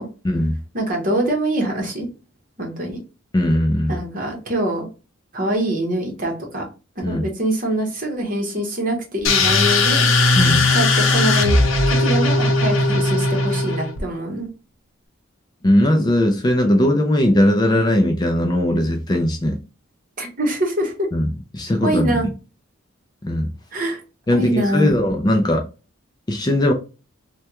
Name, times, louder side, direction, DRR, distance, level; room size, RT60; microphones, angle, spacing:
voice 1, 0.2-0.6 3.3-4.0 7.0-7.2 10.4-10.7 15.6-19.6 21.1-21.3 21.5-22.2 23.2-23.5 24.3-25.6 26.3-26.7, left 1 dB, 20° left, 3 dB, 0.4 m, -18 dB
voice 2, 0.7-2.1 2.6-3.0 3.9-4.9 5.3-6.7 7.0-10.1 10.7-11.6 11.9-14.5 20.2-20.9 21.8-22.2 23.7-24.0 24.3-24.9, right 1 dB, 40° right, 1 dB, 1.0 m, -24 dB
sound 1, 9.2-14.0, left 2 dB, 80° left, 0.7 m, -17 dB
3.3 x 2.2 x 2.8 m, 0.32 s
head